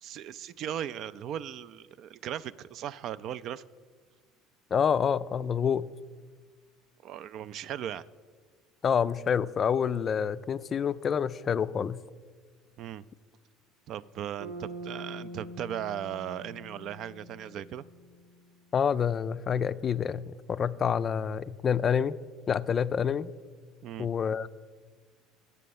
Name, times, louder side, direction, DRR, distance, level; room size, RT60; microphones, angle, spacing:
voice 1, 0.0-3.6 7.0-8.0 12.8-13.0 13.9-17.8 23.8-24.1, right 10 dB, 55° right, 17 dB, 0.3 m, -37 dB
voice 2, 4.7-5.8 8.8-12.0 18.7-22.2 22.5-23.3 24.0-24.5, left 7 dB, 40° left, 16 dB, 0.3 m, -27 dB
Bass guitar, 14.4-18.5, right 1 dB, 80° right, 0.9 m, -44 dB
8.3 x 6.6 x 7.0 m, 1.5 s
hypercardioid pair, 70°, 0 cm